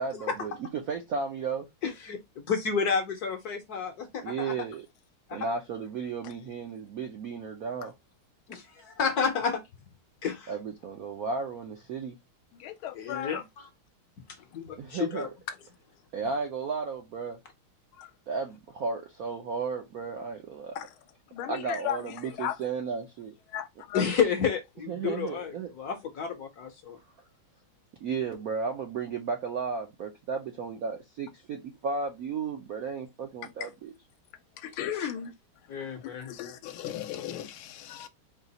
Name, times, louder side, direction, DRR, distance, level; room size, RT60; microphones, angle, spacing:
voice 1, 0.0-1.7 4.2-4.9 5.3-7.9 10.5-12.2 14.8-15.3 16.1-17.4 18.3-20.8 21.5-23.3 24.9-25.7 28.0-33.9, right 5 dB, 70° right, 0.8 m, -34 dB
voice 2, 1.8-2.2 2.5-4.5 5.3-5.5 8.5-9.6 10.2-10.5 12.9-13.7 14.5-15.3 23.9-27.0 35.0-35.1 35.7-36.3, left 6 dB, 60° left, 1.0 m, -30 dB
voice 3, 12.6-13.3 18.0-18.1 20.7-20.9 21.3-22.0 22.4-22.5 23.5-24.0 34.6-35.3 36.3-38.1, left 11 dB, 80° left, 1.5 m, -35 dB
4.6 x 2.4 x 4.0 m
omnidirectional pair, 2.4 m